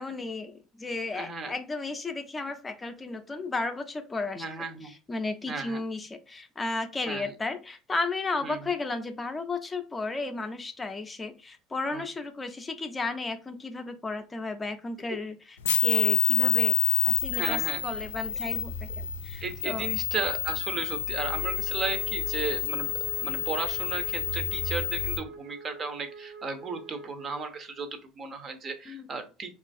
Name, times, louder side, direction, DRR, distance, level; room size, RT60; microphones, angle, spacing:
voice 1, 0.0-4.4 4.8-16.8 17.1-19.9 28.9-29.1, left 3 dB, 20° left, 7 dB, 0.5 m, -34 dB
voice 2, 1.1-1.5 4.4-4.9 5.5-5.8 7.1-7.3 8.4-8.6 11.9-12.0 17.3-17.8 19.4-22.9 23.2-29.5, right 4 dB, 35° right, 7 dB, 0.6 m, -35 dB
sound 1, 15.6-25.2, left 9 dB, 85° left, 0.3 m, -28 dB
Wind instrument woodwind instrument, 21.1-27.5, right 5 dB, 80° right, 0.9 m, -45 dB
3.0 x 2.4 x 2.5 m, 0.33 s
hypercardioid pair, 70°, 0 cm